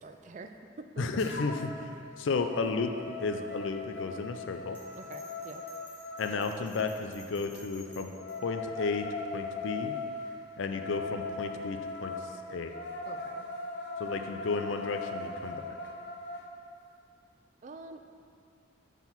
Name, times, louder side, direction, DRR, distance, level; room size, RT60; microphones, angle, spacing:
voice 1, 0.0-0.5 0.9-1.0 4.9-5.6 13.1-13.5 17.6-18.1, right 3 dB, 40° right, 7 dB, 0.3 m, -46 dB
voice 2, 1.0-2.9 3.2-4.8 6.2-8.1 8.4-9.9 10.6-12.1 12.5-12.7 14.0-15.6, left 4 dB, 75° left, 6 dB, 0.4 m, -33 dB
sound 1, 1.2-1.8 2.2-6.4 7.9-16.5, left 3 dB, 55° left, 0.8 m, -40 dB
Bell, 4.7-8.3, left 1 dB, 10° left, 1.4 m, -53 dB
5.7 x 4.5 x 5.7 m, 2.4 s
head